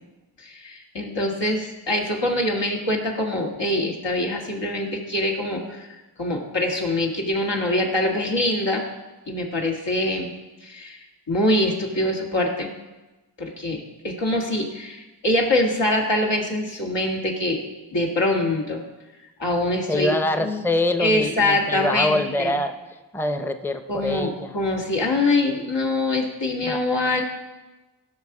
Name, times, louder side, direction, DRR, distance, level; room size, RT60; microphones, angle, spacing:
voice 1, 0.4-8.8 9.3-10.3 10.6-11.0 11.3-12.7 13.4-17.6 17.9-18.8 19.4-20.6 21.0-22.6 23.9-27.2, left 1 dB, 80° left, 0 dB, 1.8 m, -24 dB
voice 2, 19.9-22.7 23.1-24.5 26.6-26.8, left 1 dB, 5° left, 8 dB, 0.6 m, -24 dB
16.5 x 5.7 x 4.8 m, 1.1 s
wide cardioid pair, 55°, 43 cm